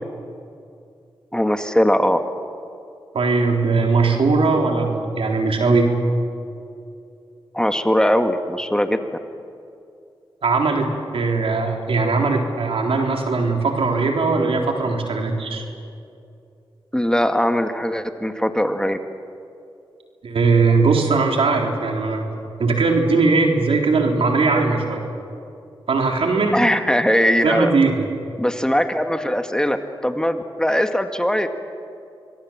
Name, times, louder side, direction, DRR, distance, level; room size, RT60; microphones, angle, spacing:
voice 1, 1.3-2.2 7.5-9.0 16.9-19.0 26.5-27.7 28.4-29.8 30.0-31.5, equal, 10° left, 6 dB, 2.0 m, -20 dB
voice 2, 3.1-5.9 10.4-15.6 20.2-22.3 22.6-25.0 25.9-26.6 27.4-28.1, right 3 dB, 75° right, 2 dB, 3.7 m, -19 dB
27.0 x 21.5 x 7.5 m, 2.6 s
cardioid pair, 45°, 10 cm